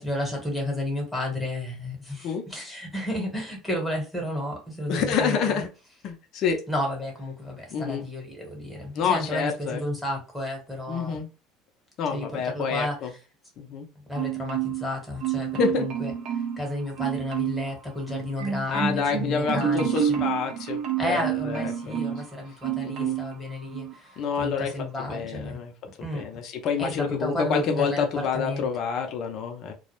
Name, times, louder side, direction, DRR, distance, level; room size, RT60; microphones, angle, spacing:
voice 1, 0.0-5.6 6.7-11.2 12.1-13.0 14.1-16.1 16.6-20.2 21.0-25.6 26.0-26.2 26.8-28.7, left 1 dB, 5° left, 0 dB, 1.1 m, -32 dB
voice 2, 4.9-5.7 6.0-6.6 7.7-8.0 8.9-9.8 10.9-11.3 12.0-13.1 13.6-13.9 15.5-15.9 18.7-22.2 22.8-23.2 24.2-25.7 26.1-29.7, left 6 dB, 50° left, 4 dB, 0.5 m, -28 dB
Marimba xylophone, 14.2-14.9 15.2-16.6 17.0-17.7 18.1-22.3 22.6-23.3 23.7-23.9, right 10 dB, 55° right, 0.6 m, -29 dB
2.2 x 2.0 x 2.9 m, 0.32 s
supercardioid pair, 130°, 0 cm